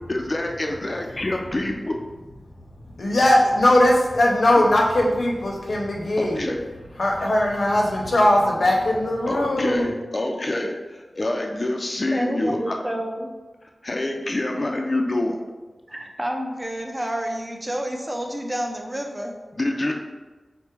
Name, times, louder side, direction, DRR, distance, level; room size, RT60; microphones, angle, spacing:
voice 1, 0.1-2.0 6.2-6.7 9.3-12.8 13.8-15.4 19.5-19.9, left 1 dB, 40° left, 2 dB, 0.4 m, -26 dB
voice 2, 3.0-6.4 7.0-10.0, left 1 dB, 70° left, -1 dB, 0.7 m, -19 dB
voice 3, 12.1-13.3 15.9-19.3, equal, 20° right, 2 dB, 0.6 m, -29 dB
4.6 x 2.1 x 4.4 m, 1.2 s
wide cardioid pair, 80°, 0 cm